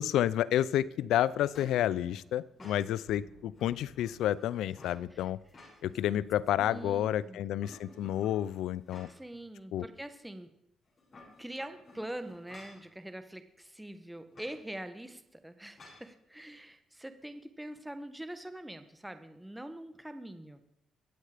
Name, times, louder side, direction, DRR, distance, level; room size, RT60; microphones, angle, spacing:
voice 1, 0.0-5.4 5.8-9.1 9.7-9.8, left 12 dB, 85° left, 19 dB, 0.4 m, -30 dB
Tangier-radio into elevator, 0.8-7.0, left 3 dB, 60° left, 5.8 m, -58 dB
sound 1, 2.6-3.0 3.5-5.0 5.4-6.1 6.5-7.2 7.6-9.4 9.8-9.9 10.9-12.9 14.3-14.6 15.8-16.1, left 2 dB, 35° left, 6.6 m, -55 dB
voice 2, 6.6-7.4 9.1-10.5 11.4-20.6, right 1 dB, 5° right, 9 dB, 1.2 m, -44 dB
22.0 x 7.9 x 5.0 m, 0.79 s
cardioid pair, 90°, 0 cm